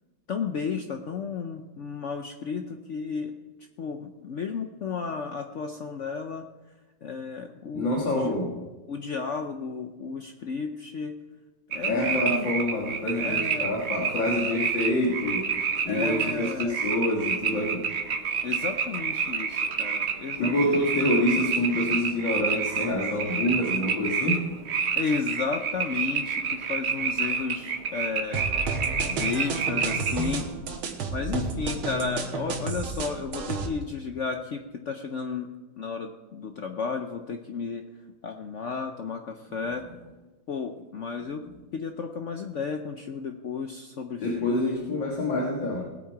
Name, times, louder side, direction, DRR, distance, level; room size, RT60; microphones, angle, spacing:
voice 1, 0.3-3.3 3.8-6.5 7.0-8.4 8.9-11.2 11.7-12.5 13.2-13.7 15.9-16.8 18.4-20.8 25.0-28.5 29.1-30.5 30.9-35.5 35.8-37.8 38.2-39.9 40.5-41.4 41.7-44.8, left 5 dB, 85° left, 5 dB, 0.6 m, -33 dB
voice 2, 7.7-8.6 11.9-15.5 15.8-17.9 20.4-24.5 44.2-45.9, left 1 dB, 65° left, -2 dB, 2.4 m, -27 dB
sound 1, 11.7-30.3, right 6 dB, 60° right, 0.7 m, -29 dB
sound 2, 28.3-33.7, right 4 dB, 90° right, 2.1 m, -31 dB
19.0 x 8.6 x 4.6 m, 1.2 s
omnidirectional pair, 2.2 m